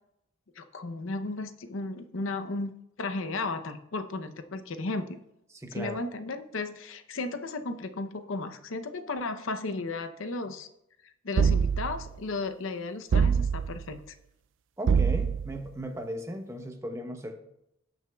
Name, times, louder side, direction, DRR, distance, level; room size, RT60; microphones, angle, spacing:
voice 1, 0.6-2.7 3.0-5.2 5.7-10.7 11.2-14.1, left 3 dB, 75° left, 9 dB, 0.7 m, -34 dB
voice 2, 5.6-6.0 14.8-17.4, equal, 15° right, 5 dB, 0.7 m, -36 dB
sound 1, 11.4-12.1 13.1-13.9 14.9-15.6, right 6 dB, 65° right, 0.3 m, -24 dB
18.0 x 6.2 x 2.3 m, 0.82 s
head